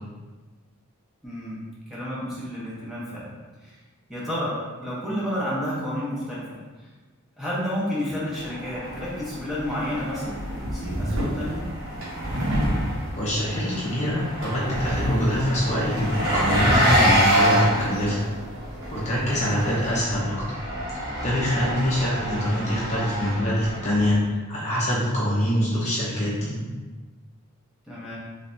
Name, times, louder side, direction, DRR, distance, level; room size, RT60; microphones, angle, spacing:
voice 1, 1.2-3.8 4.1-6.6 7.4-11.7 21.5-21.8 27.9-28.2, equal, ahead, -8 dB, 0.8 m, -31 dB
Engine, 8.4-24.2, equal, 45° right, 1.3 m, -27 dB
sound 1, 8.8-19.9, equal, 60° right, 0.8 m, -32 dB
voice 2, 13.2-18.2 18.9-20.4 21.2-26.6, equal, 30° left, -7 dB, 0.7 m, -24 dB
3.3 x 3.3 x 2.6 m, 1.3 s
head